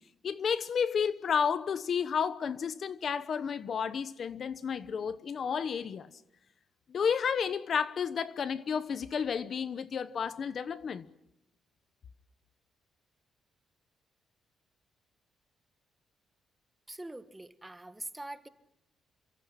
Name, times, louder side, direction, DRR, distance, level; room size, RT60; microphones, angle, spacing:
voice 1, 0.2-6.1 6.9-11.0, left 6 dB, 45° left, 1.0 m, -31 dB
voice 2, 16.9-18.5, right 2 dB, 10° right, 1.5 m, -43 dB
28.5 x 26.0 x 5.9 m
cardioid pair, 140°, 0 cm